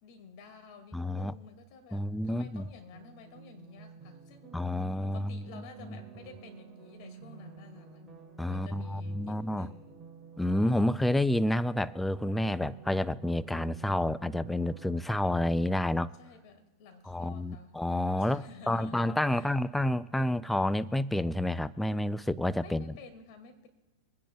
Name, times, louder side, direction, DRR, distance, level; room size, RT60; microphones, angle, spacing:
voice 1, 0.0-4.7 5.0-8.2 8.5-10.0 16.2-17.7 18.2-19.5 22.6-23.7, left 5 dB, 55° left, 7 dB, 2.1 m, -52 dB
voice 2, 0.9-1.3 1.9-2.7 4.5-5.5 5.9-6.0 8.4-9.7 10.4-16.1 17.1-22.9, left 1 dB, 5° left, 17 dB, 0.3 m, -29 dB
sound 1, 2.9-15.0, right 6 dB, 15° right, 2.5 m, -51 dB
24.0 x 10.0 x 2.3 m, 1.1 s
hypercardioid pair, 120°, 3 cm